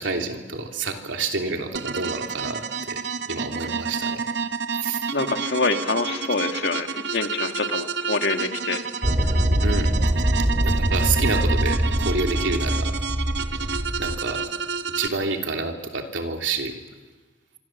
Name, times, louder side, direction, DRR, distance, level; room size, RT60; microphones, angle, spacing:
voice 1, 0.0-3.0 3.3-4.2 4.8-5.0 9.6-9.9 10.6-12.9 14.0-14.4 15.0-16.7, right 3 dB, 85° right, 3 dB, 3.2 m, -28 dB
sound 1, 1.7-15.1, right 5 dB, 65° right, 1.0 m, -30 dB
voice 2, 5.1-8.8, left 3 dB, 60° left, 5 dB, 2.0 m, -26 dB
sound 2, 9.0-14.2, equal, 35° right, 2.9 m, -23 dB
26.0 x 25.5 x 7.4 m, 1.3 s
head